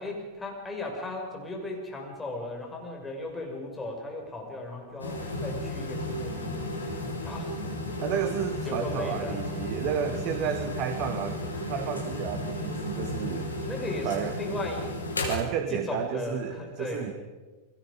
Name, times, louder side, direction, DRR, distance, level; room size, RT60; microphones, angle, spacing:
voice 1, 0.0-8.0 8.6-9.5 13.6-14.9 15.7-17.1, left 2 dB, 10° left, 0 dB, 6.5 m, -37 dB
sound 1, 5.0-15.4, left 1 dB, 80° left, 4.7 m, -34 dB
voice 2, 8.0-13.5 14.0-14.3 15.3-17.1, right 8 dB, 40° right, 7 dB, 1.6 m, -32 dB
29.5 x 21.5 x 5.3 m, 1.3 s
figure-of-eight pair, 90°, 0 cm